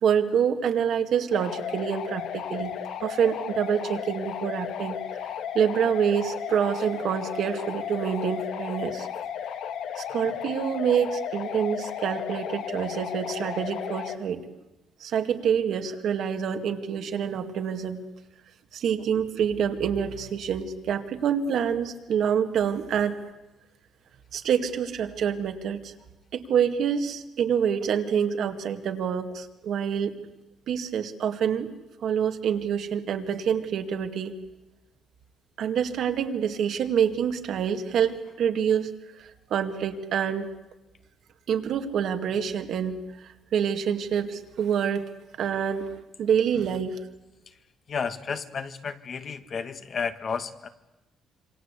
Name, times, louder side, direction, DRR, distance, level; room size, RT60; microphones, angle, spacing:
voice 1, 0.0-5.0 5.5-9.1 10.0-14.4 15.0-18.0 18.7-23.2 24.3-25.9 26.3-30.2 30.7-31.7 32.0-34.3 35.6-40.5 41.5-45.1 45.4-45.9 46.2-47.0, right 8 dB, 65° right, 6 dB, 2.2 m, -27 dB
sound 1, 1.3-14.2, left 9 dB, 80° left, 1.9 m, -34 dB
voice 2, 47.9-50.7, left 6 dB, 40° left, 9 dB, 1.6 m, -32 dB
27.0 x 24.5 x 8.4 m, 1.0 s
cardioid pair, 125°, 0 cm